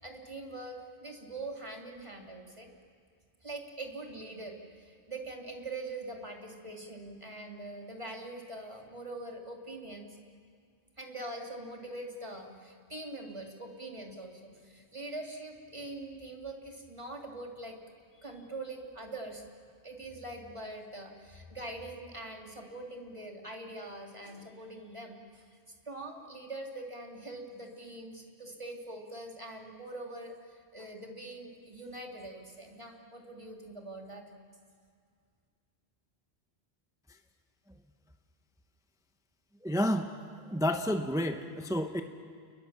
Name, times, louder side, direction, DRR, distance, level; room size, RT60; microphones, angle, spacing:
voice 1, 0.0-2.7 3.4-10.2 11.0-17.8 18.2-19.4 19.8-25.4 25.9-34.2, right 2 dB, 30° right, 1 dB, 2.6 m, -43 dB
voice 2, 39.6-40.1 40.5-42.0, equal, 5° right, 6 dB, 0.8 m, -30 dB
30.0 x 20.5 x 7.3 m, 2.1 s
omnidirectional pair, 1.1 m